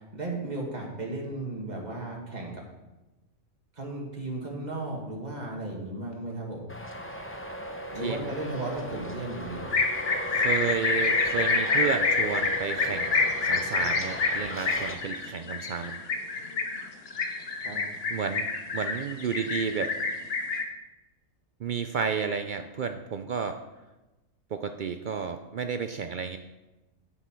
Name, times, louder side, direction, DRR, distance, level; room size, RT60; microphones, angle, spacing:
voice 1, 0.1-2.6 3.8-6.7 7.9-9.7 17.6-17.8, right 2 dB, 30° right, -1 dB, 2.0 m, -35 dB
Traffic noise roadway noise, 6.7-14.9, equal, 15° left, 0.6 m, -37 dB
voice 2, 8.0-8.3 10.3-16.0 18.1-18.5 18.7-19.9 21.6-23.6 24.5-26.4, right 6 dB, 75° right, 7 dB, 0.4 m, -32 dB
sound 1, 9.7-20.6, left 4 dB, 50° left, 1.2 m, -27 dB
9.1 x 8.1 x 4.5 m, 1.1 s
omnidirectional pair, 1.4 m